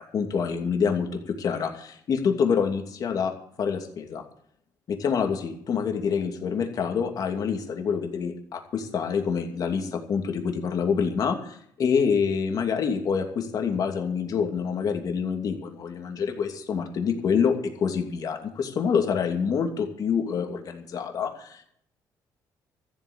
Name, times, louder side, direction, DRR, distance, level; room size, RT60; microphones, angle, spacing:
voice 1, 0.0-4.2 4.9-21.6, left 6 dB, 55° left, 4 dB, 2.7 m, -27 dB
14.0 x 8.6 x 8.2 m, 0.65 s
cardioid pair, 105°, 8 cm